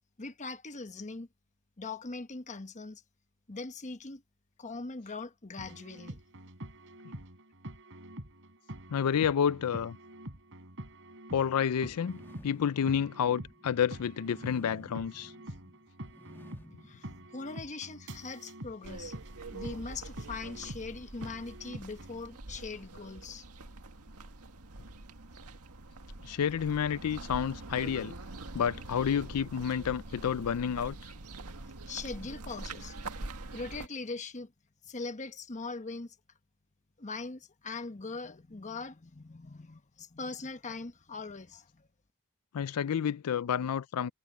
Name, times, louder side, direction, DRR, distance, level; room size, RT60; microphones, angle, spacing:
voice 1, 0.2-1.3 1.8-3.0 3.5-4.2 4.6-6.2 16.8-19.1 19.5-23.4 31.9-33.0 33.5-34.5 34.9-36.2 37.0-41.9, left 3 dB, 35° left, 1.1 m, -41 dB
sound 1, 5.6-22.3, right 1 dB, 60° right, 4.3 m, -46 dB
voice 2, 8.9-10.0 11.3-15.3 26.2-28.1 28.5-31.0 42.5-44.1, left 8 dB, 85° left, 0.4 m, -30 dB
sound 2, 11.9-18.0, left 1 dB, 10° left, 1.3 m, -55 dB
sound 3, 18.8-33.9, right 2 dB, 85° right, 1.9 m, -45 dB
head